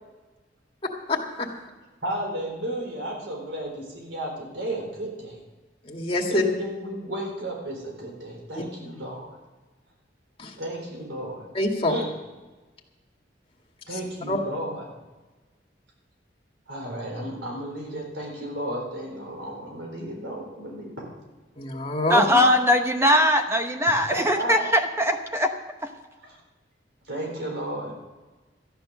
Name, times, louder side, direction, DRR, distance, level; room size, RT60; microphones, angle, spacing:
voice 1, 1.1-1.5 5.8-6.4 8.5-8.6 10.4-10.6 11.5-12.0 13.9-14.0 14.3-14.4 21.6-22.4, left 2 dB, 30° left, 0 dB, 2.0 m, -26 dB
voice 2, 2.0-5.4 6.3-9.4 10.5-11.5 11.9-12.1 13.9-14.8 16.7-21.2 24.1-24.7 26.2-26.4 27.1-27.9, right 1 dB, 80° right, 0 dB, 4.2 m, -33 dB
voice 3, 22.1-25.5 25.8-25.9, equal, 15° right, 5 dB, 1.0 m, -21 dB
14.0 x 10.5 x 6.4 m, 1.2 s
head